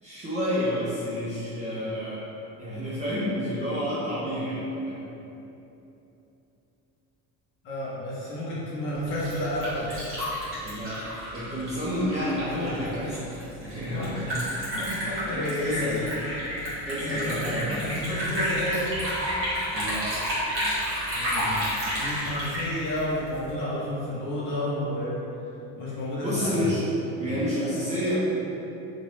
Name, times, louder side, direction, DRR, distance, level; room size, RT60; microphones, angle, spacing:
voice 1, 0.0-2.2 2.6-5.0 10.6-11.0 11.3-13.2 13.6-14.3 15.3-16.0 16.9-17.9 19.7-20.0 26.2-26.8 27.2-28.2, equal, 20° right, -10 dB, 0.4 m, -29 dB
voice 2, 7.6-9.9 12.5-12.9 13.8-16.0 16.9-18.9 21.1-21.6 22.0-25.2 25.7-26.7, left 1 dB, 35° left, -7 dB, 0.8 m, -31 dB
Liquid, 8.9-23.5, equal, 40° right, 1.1 m, -31 dB
2.9 x 2.5 x 3.1 m, 3.0 s
cardioid pair, 165°, 35 cm